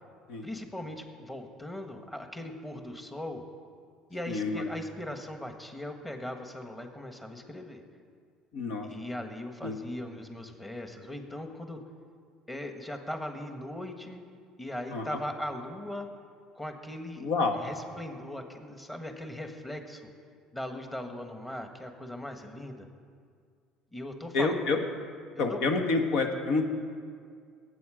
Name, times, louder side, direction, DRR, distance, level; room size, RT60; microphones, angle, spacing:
voice 1, 0.4-3.4 4.1-7.8 8.8-11.8 12.5-14.2 14.6-16.1 16.5-20.1 20.5-22.9 23.9-24.5 25.3-25.6, left 1 dB, 10° left, 5 dB, 1.4 m, -39 dB
voice 2, 4.3-4.9 8.5-8.9 9.6-9.8 14.9-15.2 17.2-17.6 24.3-24.8 25.4-26.6, left 3 dB, 75° left, 4 dB, 1.5 m, -28 dB
18.5 x 8.4 x 5.0 m, 2.1 s
supercardioid pair, 105°, 0 cm